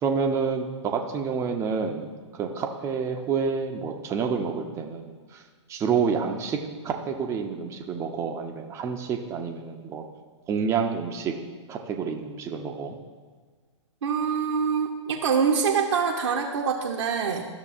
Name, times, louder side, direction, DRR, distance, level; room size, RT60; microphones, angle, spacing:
voice 1, 0.0-5.4 5.7-6.6 6.8-10.0 10.5-11.3 11.7-13.0, right 6 dB, 15° right, 2 dB, 0.6 m, -28 dB
voice 2, 14.0-17.4, right 6 dB, 65° right, -1 dB, 0.8 m, -25 dB
11.5 x 6.6 x 2.5 m, 1.5 s
figure-of-eight pair, 110°, 16 cm